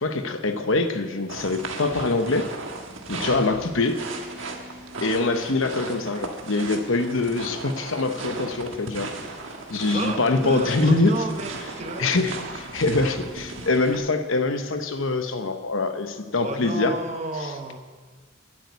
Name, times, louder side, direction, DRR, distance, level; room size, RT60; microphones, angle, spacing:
voice 1, 0.0-2.5 3.1-4.0 5.0-9.1 9.7-11.2 12.0-16.9, left 3 dB, 70° left, 8 dB, 0.9 m, -24 dB
sound 1, 1.3-14.0, right 3 dB, 65° right, 1.4 m, -36 dB
voice 2, 9.9-12.2 16.3-17.8, right 2 dB, 30° right, 5 dB, 1.1 m, -32 dB
11.5 x 8.7 x 8.3 m, 1.5 s
head